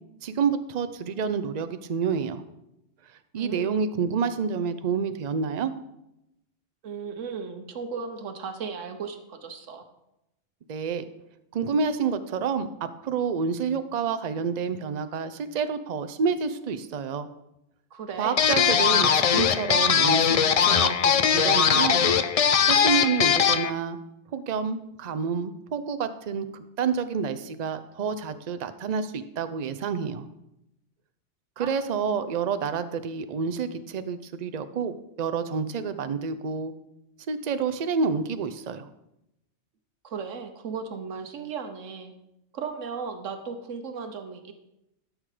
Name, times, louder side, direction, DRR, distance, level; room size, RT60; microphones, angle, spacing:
voice 1, 0.2-2.4 3.3-5.7 10.7-11.0 11.5-17.3 18.2-22.0 22.7-24.0 24.3-30.3 31.6-36.7 37.3-38.9, right 6 dB, 45° right, 11 dB, 0.6 m, -28 dB
voice 2, 3.3-3.7 6.8-9.8 17.9-18.4 31.6-31.7 40.0-42.1 42.5-44.5, right 5 dB, 90° right, 6 dB, 1.3 m, -36 dB
sound 1, 18.4-23.7, left 7 dB, 60° left, 0.3 m, -20 dB
12.5 x 6.4 x 4.9 m, 0.86 s
omnidirectional pair, 1.2 m